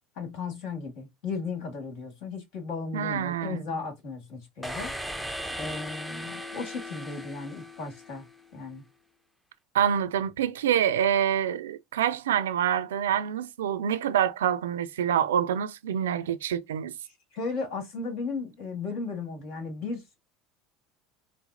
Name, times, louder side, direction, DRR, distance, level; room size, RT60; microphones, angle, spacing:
voice 1, 0.1-4.9 5.6-8.3 8.5-8.8 17.3-20.2, left 4 dB, 65° left, 1.6 m, -35 dB
voice 2, 2.9-3.6 9.7-16.9, right 9 dB, 80° right, 0.3 m, -26 dB
sound 1, 4.6-8.5, equal, 5° left, 0.6 m, -38 dB
4.1 x 2.0 x 2.4 m
hypercardioid pair, 75°, 0 cm